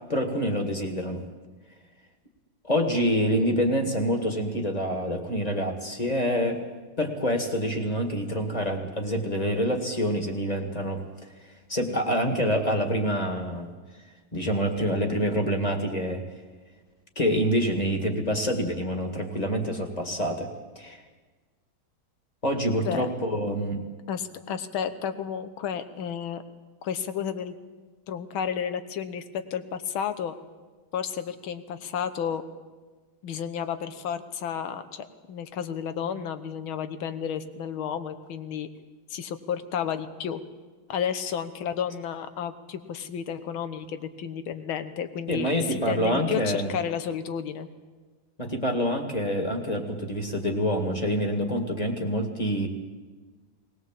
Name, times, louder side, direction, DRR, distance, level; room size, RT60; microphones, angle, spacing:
voice 1, 0.1-1.2 2.6-6.6 7.0-11.0 11.7-13.7 14.3-16.2 17.2-20.5 20.8-21.0 22.4-23.8 45.3-46.7 48.4-52.7, equal, 20° left, 4 dB, 1.9 m, -26 dB
voice 2, 22.8-23.1 24.1-26.4 26.8-27.6 28.1-30.3 30.9-32.4 33.2-38.7 39.1-40.4 40.9-47.7, left 8 dB, 75° left, 11 dB, 1.9 m, -32 dB
20.0 x 19.5 x 7.6 m, 1.4 s
omnidirectional pair, 2.3 m